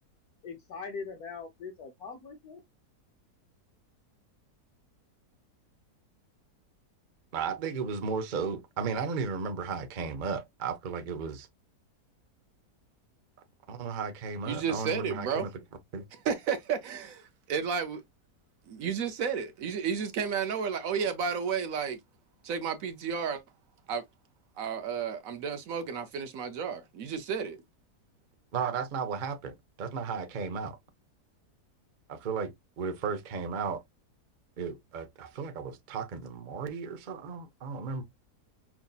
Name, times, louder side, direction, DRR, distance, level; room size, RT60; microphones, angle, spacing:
voice 1, 0.4-2.6, left 5 dB, 70° left, 1.2 m, -41 dB
voice 2, 7.3-11.5 13.7-15.5 15.9-16.0 28.5-30.8 32.1-33.8 34.6-38.0, right 5 dB, 45° right, 0.6 m, -34 dB
voice 3, 14.5-15.5 16.1-18.0 18.7-22.0 22.4-23.4 23.9-24.0 24.6-27.6, right 6 dB, 70° right, 0.9 m, -32 dB
5.8 x 2.7 x 2.3 m
omnidirectional pair, 1.7 m